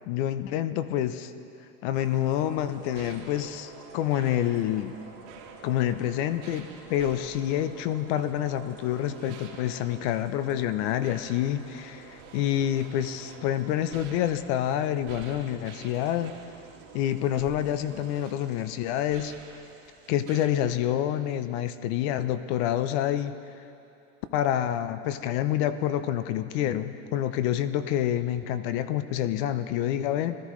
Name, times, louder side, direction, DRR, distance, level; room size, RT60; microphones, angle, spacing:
voice 1, 0.1-1.3 1.8-5.0 5.6-16.3 16.9-19.3 20.1-23.4 24.3-30.4, left 11 dB, 50° left, 12 dB, 0.7 m, -27 dB
sound 1, 1.9-20.5, right 5 dB, 60° right, 2.2 m, -47 dB
20.0 x 13.5 x 3.2 m, 2.8 s
supercardioid pair, 125°, 42 cm